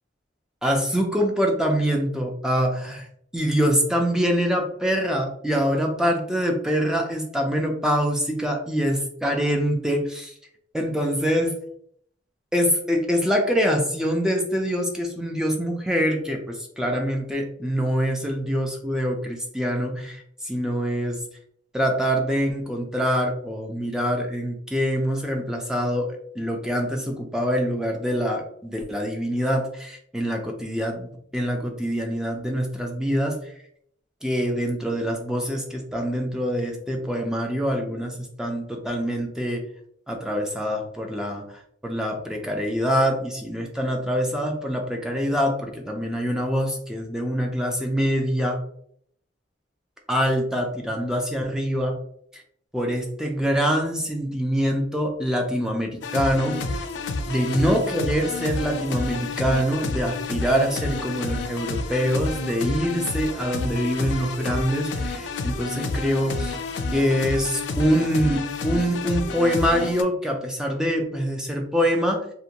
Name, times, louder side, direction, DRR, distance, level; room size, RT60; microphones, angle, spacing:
voice 1, 0.6-3.1 3.3-10.3 10.7-11.6 12.5-21.2 21.7-33.4 34.2-39.6 40.1-41.4 41.8-48.6 50.1-52.0 52.3-52.4 52.7-56.6 57.3-66.6 66.9-72.3, equal, 5° right, 1 dB, 0.4 m, -24 dB
sound 1, 56.0-70.0, left 3 dB, 65° left, 0.3 m, -30 dB
2.5 x 2.2 x 2.8 m, 0.67 s
head